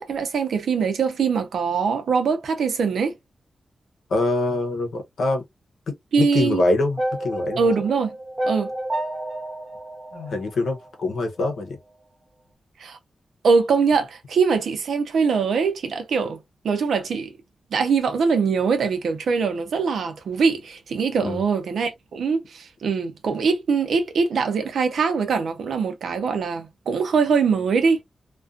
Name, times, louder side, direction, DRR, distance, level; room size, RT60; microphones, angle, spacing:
voice 1, 0.0-3.1 6.1-6.6 7.6-8.1 8.4-8.7 12.8-13.0 13.4-16.4 16.6-17.3 17.7-28.0, right 5 dB, 85° right, 0.7 m, -22 dB
voice 2, 4.1-5.4 5.9-7.7 10.1-11.8 21.2-21.4, left 2 dB, 75° left, 0.8 m, -24 dB
sound 1, 7.0-11.2, right 1 dB, 10° right, 0.7 m, -30 dB
2.5 x 2.3 x 2.4 m
wide cardioid pair, 165°, 0 cm